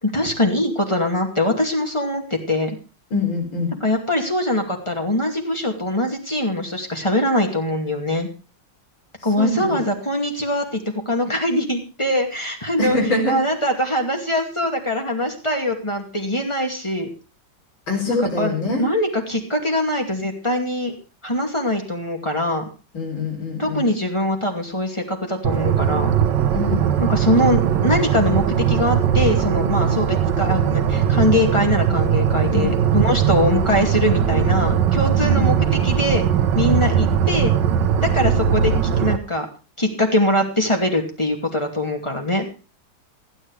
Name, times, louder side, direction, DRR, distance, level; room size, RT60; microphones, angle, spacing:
voice 1, 0.0-2.8 3.8-8.3 9.2-13.0 13.3-17.1 18.1-20.9 21.2-22.6 23.6-26.1 27.0-35.6 35.8-36.2 36.5-37.5 38.0-39.5 39.8-42.6, left 1 dB, 15° left, 3 dB, 2.5 m, -22 dB
voice 2, 3.1-3.8 9.4-9.8 12.8-13.4 17.9-18.9 22.9-23.9 26.5-26.9 32.5-32.7 35.2-35.5, left 2 dB, 85° left, 2 dB, 5.1 m, -24 dB
sound 1, 25.4-39.2, right 8 dB, 70° right, 1.6 m, -19 dB
15.5 x 10.0 x 4.9 m, 0.34 s
omnidirectional pair, 2.1 m